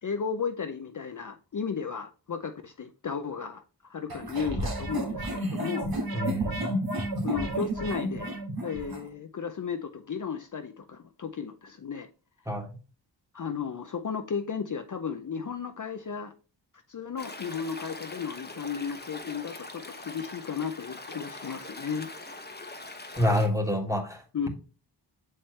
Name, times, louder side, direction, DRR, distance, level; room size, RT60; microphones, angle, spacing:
voice 1, 0.0-5.9 7.2-8.3 8.6-12.1 13.3-16.3 16.9-22.1 24.3-24.5, left 6 dB, 45° left, 0.6 m, -34 dB
sound 1, 4.1-9.0, right 1 dB, 55° right, 1.7 m, -31 dB
voice 2, 6.1-6.8 12.5-12.7 23.2-24.2, left 1 dB, 5° right, 1.6 m, -27 dB
Stream, 17.2-23.5, left 2 dB, 20° left, 1.1 m, -42 dB
7.2 x 4.4 x 3.2 m
wide cardioid pair, 80°, 44 cm